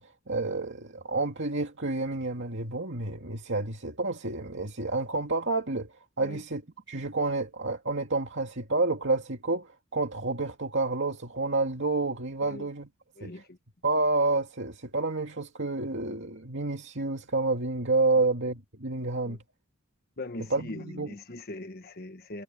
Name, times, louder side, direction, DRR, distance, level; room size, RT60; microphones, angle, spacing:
voice 1, 0.0-6.6 6.9-12.9 13.2-13.4 13.8-19.4 20.5-21.1, right 3 dB, 60° right, 2.4 m, -29 dB
voice 2, 13.2-13.6 18.1-18.2 19.2-19.4 20.2-22.4, left 2 dB, 45° left, 1.4 m, -41 dB
head